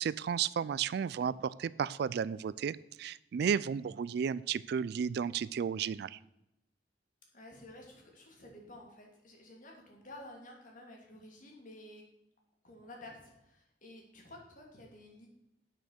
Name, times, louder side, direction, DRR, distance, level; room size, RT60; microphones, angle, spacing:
voice 1, 0.0-6.2, right 7 dB, 65° right, 19 dB, 0.3 m, -33 dB
voice 2, 7.3-12.0 12.6-15.3, left 1 dB, 50° left, 0 dB, 2.8 m, -52 dB
8.8 x 6.5 x 6.5 m, 0.86 s
head